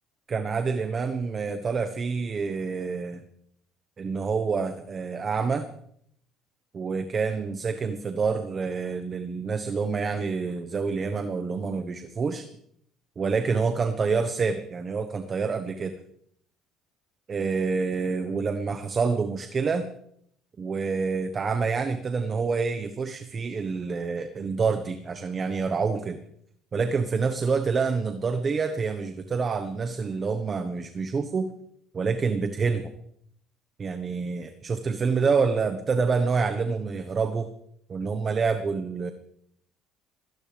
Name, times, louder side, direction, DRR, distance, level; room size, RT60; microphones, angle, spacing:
voice 1, 0.3-3.2 4.0-5.7 6.7-12.5 13.2-15.9 17.3-19.9 20.6-26.2 26.7-31.5 31.9-32.9 33.8-37.5 37.9-39.1, right 5 dB, 35° right, 8 dB, 1.3 m, -27 dB
22.0 x 17.5 x 3.5 m, 0.69 s
supercardioid pair, 95°, 0 cm